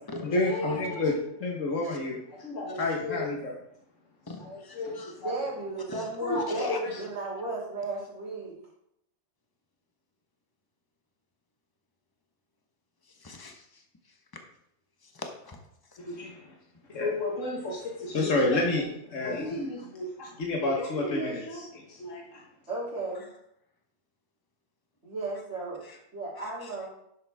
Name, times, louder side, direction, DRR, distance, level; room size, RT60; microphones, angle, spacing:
voice 1, 0.1-3.5 4.4-5.3 6.2-6.8 16.0-16.5 16.9-22.4, left 2 dB, 85° left, -1 dB, 1.7 m, -30 dB
voice 2, 4.3-5.2 5.9-6.1 6.5-6.8 13.0-14.2 15.0-15.6 16.1-16.2 19.8-19.9 20.2-20.3 25.8-26.0 26.4-26.9, left 2 dB, 20° left, 4 dB, 1.1 m, -42 dB
voice 3, 5.2-8.6 22.7-23.3 25.0-25.8 26.1-26.9, right 2 dB, 65° right, -6 dB, 3.6 m, -34 dB
11.0 x 7.2 x 3.5 m, 0.75 s
omnidirectional pair, 1.3 m